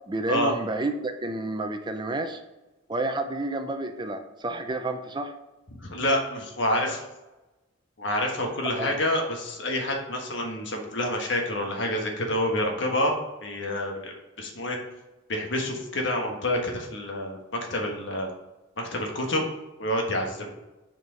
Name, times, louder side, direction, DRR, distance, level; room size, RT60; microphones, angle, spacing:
voice 1, 0.1-2.4 2.9-5.3 8.8-9.0, right 2 dB, 25° right, 7 dB, 0.5 m, -30 dB
voice 2, 5.7-7.0 8.0-13.1 13.4-14.8 15.3-18.3 18.8-19.5 19.8-20.5, left 1 dB, 65° left, 1 dB, 1.4 m, -28 dB
6.6 x 4.5 x 4.9 m, 1.0 s
head